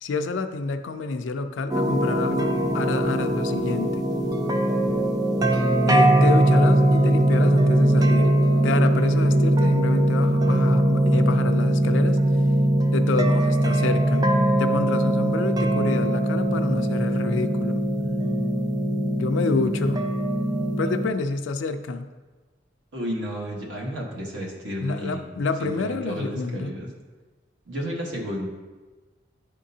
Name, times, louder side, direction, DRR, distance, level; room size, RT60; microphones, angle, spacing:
voice 1, 0.0-4.1 5.8-8.4 8.6-12.2 12.9-14.3 14.6-17.8 19.2-20.0 20.8-22.1 24.8-26.7, left 3 dB, 85° left, 8 dB, 0.4 m, -28 dB
sound 1, 1.7-21.1, right 1 dB, 20° right, 0.4 m, -21 dB
voice 2, 22.9-25.2 25.6-26.9 27.7-28.5, equal, 85° right, -1 dB, 1.2 m, -32 dB
9.8 x 3.7 x 2.7 m, 1.3 s
head